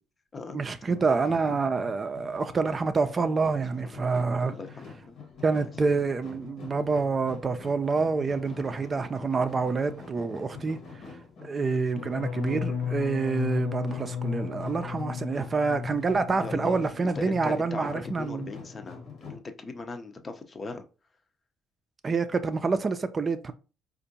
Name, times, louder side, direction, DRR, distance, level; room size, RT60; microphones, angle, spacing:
voice 1, 0.5-4.5 5.4-10.8 11.4-18.5 22.0-23.5, right 4 dB, 35° right, 0.4 m, -27 dB
sound 1, 0.9-19.4, left 5 dB, 60° left, 1.1 m, -46 dB
voice 2, 4.4-5.2 8.4-8.7 11.7-12.1 16.4-16.8 17.2-20.9, left 3 dB, 35° left, 0.6 m, -39 dB
sound 2, 11.7-17.6 17.9-18.4 18.7-19.1, left 7 dB, 75° left, 0.7 m, -35 dB
4.3 x 2.5 x 2.7 m
hypercardioid pair, 55°, 0 cm